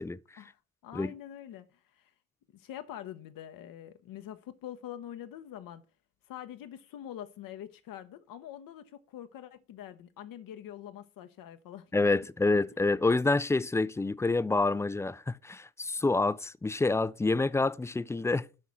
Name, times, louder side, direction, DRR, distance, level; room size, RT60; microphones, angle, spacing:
voice 1, 0.4-2.1 2.5-5.8 6.3-11.9, left 11 dB, 60° left, 0.8 m, -45 dB
voice 2, 11.9-18.5, left 3 dB, 10° left, 0.3 m, -27 dB
6.4 x 6.0 x 5.6 m
hypercardioid pair, 45°, 39 cm